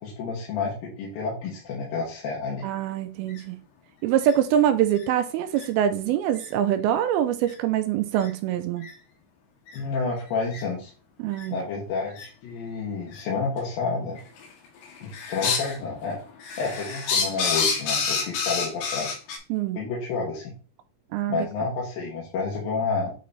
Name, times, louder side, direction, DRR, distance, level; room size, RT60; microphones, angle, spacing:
voice 1, 0.0-2.6 9.7-10.9 11.5-14.2 15.0-16.2 16.6-19.1 19.8-20.5 21.3-23.1, left 4 dB, 65° left, 3.1 m, -30 dB
voice 2, 2.6-3.6 4.0-8.8 11.2-11.6 19.5-19.8 21.1-21.5, right 10 dB, 85° right, 2.3 m, -24 dB
sound 1, 3.3-3.4 4.2-4.4 5.0-5.1 5.6-5.7 6.4-6.5 7.5-7.6 8.2-8.3 8.8-8.9 9.7-9.8 10.5-10.6 11.3-11.5 12.2-12.3 13.1-13.2 14.2-14.5 14.8-15.8 16.1-19.4, left 5 dB, 90° left, 3.6 m, -28 dB
9.2 x 3.1 x 4.1 m
omnidirectional pair, 4.7 m